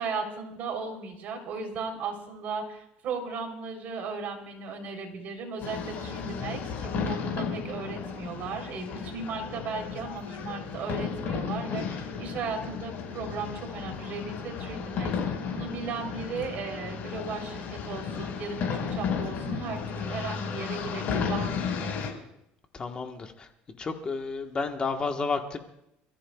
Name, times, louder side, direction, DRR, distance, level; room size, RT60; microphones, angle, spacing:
voice 1, 0.0-21.5 21.8-22.0, right 4 dB, 55° right, 2 dB, 3.5 m, -36 dB
sound 1, 5.6-22.1, left 6 dB, 55° left, 4.9 m, -34 dB
voice 2, 22.7-23.5 23.8-25.6, left 4 dB, 25° left, 4 dB, 1.3 m, -31 dB
28.0 x 14.5 x 2.3 m, 0.81 s
cardioid pair, 125°, 4 cm